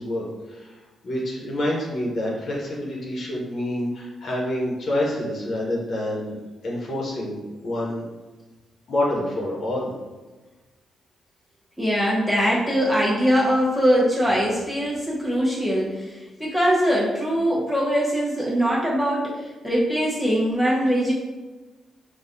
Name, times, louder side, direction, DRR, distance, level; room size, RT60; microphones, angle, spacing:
voice 1, 0.0-6.4 6.6-8.0 8.9-9.9, left 1 dB, 60° left, -3 dB, 0.9 m, -27 dB
voice 2, 11.8-21.1, equal, 10° left, -5 dB, 1.2 m, -22 dB
4.1 x 2.2 x 2.6 m, 1.2 s
cardioid pair, 70°, 0 cm